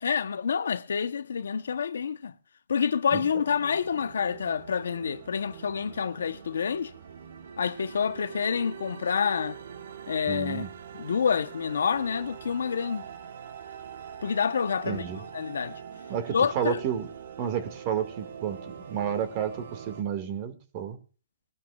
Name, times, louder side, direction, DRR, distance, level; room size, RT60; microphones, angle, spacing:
voice 1, 0.0-2.3 2.7-6.9 7.6-9.6 10.1-10.7 10.9-13.1 14.2-15.0 15.3-15.8 16.3-16.8, left 6 dB, 80° left, 0.9 m, -28 dB
sound 1, 3.4-20.0, right 8 dB, 65° right, 1.4 m, -43 dB
voice 2, 10.3-10.7 14.9-15.2 16.1-17.1 17.4-21.0, right 8 dB, 35° right, 2.0 m, -31 dB
21.0 x 11.5 x 2.4 m
hypercardioid pair, 145°, 0 cm